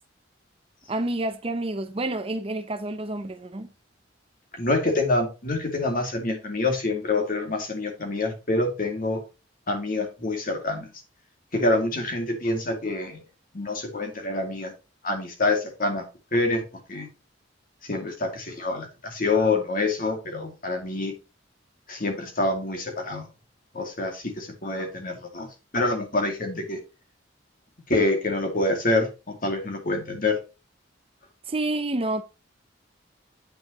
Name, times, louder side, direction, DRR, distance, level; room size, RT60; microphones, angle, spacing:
voice 1, 0.9-3.7 31.5-32.2, right 2 dB, 30° right, 0.7 m, -29 dB
voice 2, 4.6-9.2 9.7-10.9 11.5-13.2 13.5-14.7 15.0-16.0 16.3-16.6 16.9-17.1 17.9-21.1 21.9-23.3 23.7-25.5 25.7-26.8 27.9-30.4, left 2 dB, 45° left, 2.4 m, -26 dB
9.1 x 5.7 x 3.0 m
head